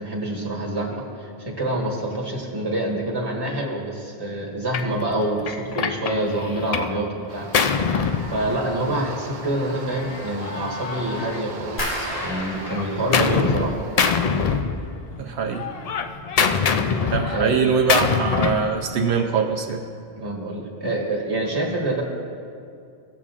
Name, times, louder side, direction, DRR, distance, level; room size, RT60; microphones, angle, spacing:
voice 1, 0.0-7.9 8.3-13.7 17.3-17.5 20.2-22.0, right 1 dB, 25° right, -2 dB, 1.3 m, -26 dB
Gunshot gunfire, 4.7-4.9 5.5-7.0 7.2-9.0 9.9-11.7 12.1-13.7 14.0-15.2 15.5-18.7, left 6 dB, 55° left, 0.4 m, -24 dB
sound 1, 7.3-14.6, right 4 dB, 55° right, 0.7 m, -39 dB
sound 2, 11.8-14.7 14.9-15.6 16.0-16.4 16.8-17.0, equal, 75° left, 2.4 m, -34 dB
voice 2, 15.2-15.7 17.0-19.8, right 5 dB, 85° right, 2 dB, 1.0 m, -23 dB
18.0 x 7.0 x 2.5 m, 2.4 s
omnidirectional pair, 1.1 m